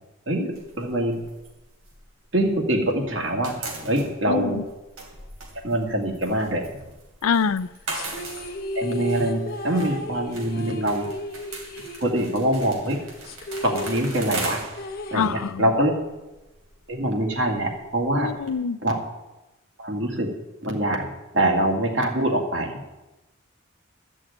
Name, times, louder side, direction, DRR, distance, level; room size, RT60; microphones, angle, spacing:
voice 1, 0.3-1.2 2.3-4.6 5.6-6.6 8.8-11.1 12.0-13.0 13.6-14.6 15.1-15.9 16.9-18.3 18.8-19.0 19.8-20.3 20.6-21.1 21.3-22.7, right 1 dB, 60° right, 2 dB, 2.3 m, -24 dB
sound 1, 0.5-2.8 3.1-18.5, right 3 dB, 80° right, 3.1 m, -39 dB
voice 2, 4.3-4.6 7.2-7.7 15.1-15.7 18.2-18.8, left 6 dB, 90° left, 16 dB, 0.5 m, -25 dB
sound 2, 7.9-12.6 12.8-12.9 13.2-15.9, equal, 45° left, 1.0 m, -34 dB
14.0 x 6.3 x 8.7 m, 1.0 s
head